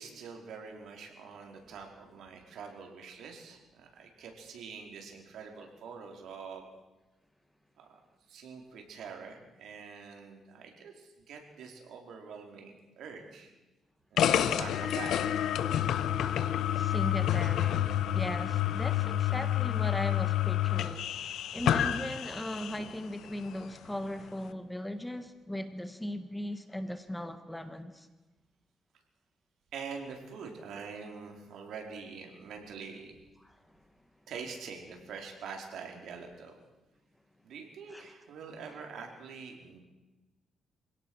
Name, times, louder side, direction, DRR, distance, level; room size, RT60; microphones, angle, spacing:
voice 1, 0.0-6.7 7.8-8.0 8.3-13.5 14.1-15.2 29.7-33.1 34.3-36.6 37.4-39.8, right 5 dB, 75° right, 4.6 m, -45 dB
sound 1, 14.2-22.9, left 11 dB, 75° left, 1.1 m, -29 dB
voice 2, 16.7-28.1 33.4-33.5 37.9-38.1, left 1 dB, 5° left, 1.5 m, -38 dB
26.0 x 17.5 x 6.4 m
cardioid pair, 105°, 0 cm